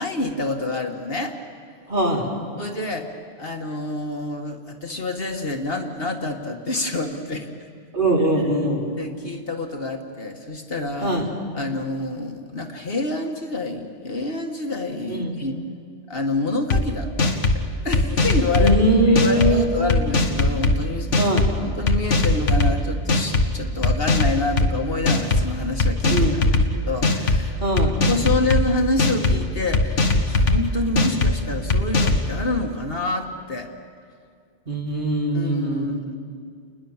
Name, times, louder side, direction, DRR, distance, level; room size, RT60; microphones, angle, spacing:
voice 1, 0.0-1.4 2.6-3.1 3.4-7.5 8.2-8.6 9.0-11.2 11.5-15.6 16.1-18.8 19.1-21.3 21.6-26.5 26.9-27.6 28.1-33.7 35.3-36.1, left 2 dB, 55° left, 3 dB, 1.9 m, -27 dB
voice 2, 1.9-2.3 7.9-8.8 11.0-11.3 15.1-15.3 18.6-19.7 21.2-21.5 26.1-26.4 27.6-27.9 34.7-36.0, right 1 dB, 45° right, -2 dB, 3.8 m, -21 dB
sound 1, 16.7-16.8 17.2-17.6 17.9-18.8 19.1-19.5 19.9-20.7 21.1-21.5 21.9-22.7 23.1-23.4 23.8-24.7 25.1-25.4 25.8-26.6 27.0-27.4 27.8-28.6 29.0-29.4 29.7-30.6 31.0-31.3 31.7-32.2, left 2 dB, 85° left, 1.9 m, -19 dB
29.5 x 21.0 x 7.3 m, 2.2 s
omnidirectional pair, 1.2 m